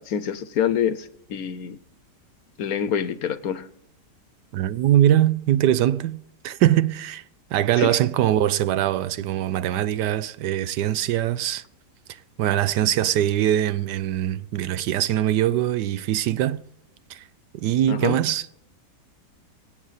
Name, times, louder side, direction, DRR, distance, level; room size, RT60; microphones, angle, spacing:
voice 1, 0.0-1.8 2.6-3.7 7.8-8.0 17.9-18.2, left 8 dB, 65° left, 1.2 m, -26 dB
voice 2, 4.5-7.2 7.5-11.6 12.4-16.6 17.1-17.2 17.5-18.4, right 12 dB, 80° right, 1.2 m, -22 dB
23.5 x 8.6 x 4.1 m
omnidirectional pair, 1.8 m